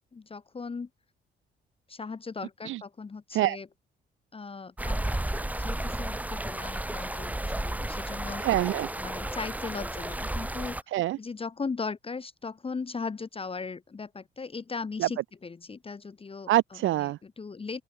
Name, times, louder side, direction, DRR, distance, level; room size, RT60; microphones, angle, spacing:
voice 1, 0.1-0.9 1.9-3.7 4.3-8.4 9.0-10.7 11.2-16.5 17.0-17.8, left 4 dB, 30° left, 1.4 m, -38 dB
sound 1, 4.8-10.8, right 1 dB, 10° right, 2.6 m, -33 dB
voice 2, 8.4-8.9 10.9-11.2 15.0-15.1 16.5-17.2, right 15 dB, 80° right, 0.9 m, -25 dB
open air
cardioid pair, 90°, 20 cm